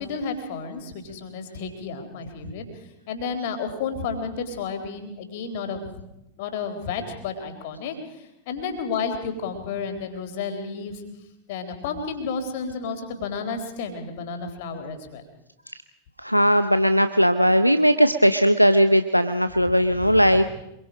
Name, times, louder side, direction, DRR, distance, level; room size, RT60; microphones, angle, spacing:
voice 1, 0.0-2.7 3.1-5.9 6.4-11.0 11.5-15.2 19.7-20.4, left 5 dB, 50° left, 6 dB, 4.0 m, -32 dB
voice 2, 16.2-20.5, equal, 90° left, 11 dB, 0.8 m, -18 dB
26.5 x 23.0 x 5.2 m, 0.87 s
figure-of-eight pair, 90°, 0 cm